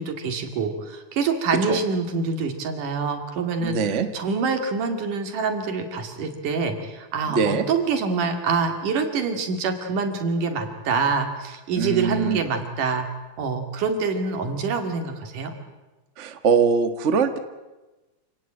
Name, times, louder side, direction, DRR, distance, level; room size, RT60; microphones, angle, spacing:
voice 1, 0.0-3.8 4.1-13.1 13.4-15.5, right 4 dB, 85° right, 6 dB, 4.0 m, -26 dB
voice 2, 3.6-4.1 7.3-7.6 11.8-12.4 16.2-17.4, right 5 dB, 35° right, 9 dB, 1.2 m, -22 dB
27.5 x 18.0 x 8.9 m, 1.1 s
omnidirectional pair, 3.5 m